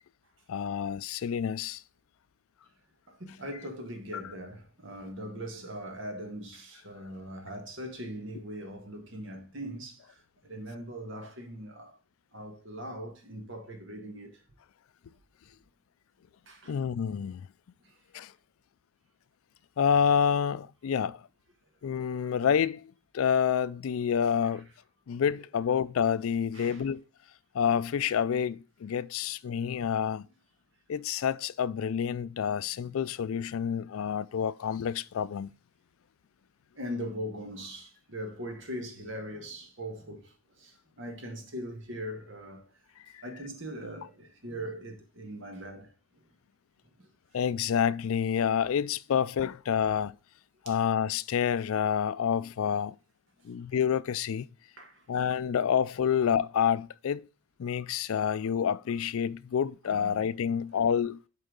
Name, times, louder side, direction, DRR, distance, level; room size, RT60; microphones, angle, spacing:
voice 1, 0.5-1.8 16.7-17.4 18.1-18.3 19.8-21.2 21.8-24.7 25.1-27.0 27.5-30.3 30.9-35.5 43.1-43.2 47.3-50.2 50.7-53.0 53.4-54.5 55.1-57.3 57.6-61.2, left 7 dB, 80° left, 0.4 m, -28 dB
voice 2, 3.1-12.0 12.3-14.4 16.5-16.8 17.8-17.9 26.5-26.8 36.7-42.7 43.2-45.9 50.6-50.8 54.8-55.0 59.9-60.2, equal, 60° right, 1.7 m, -40 dB
8.2 x 4.6 x 3.8 m
head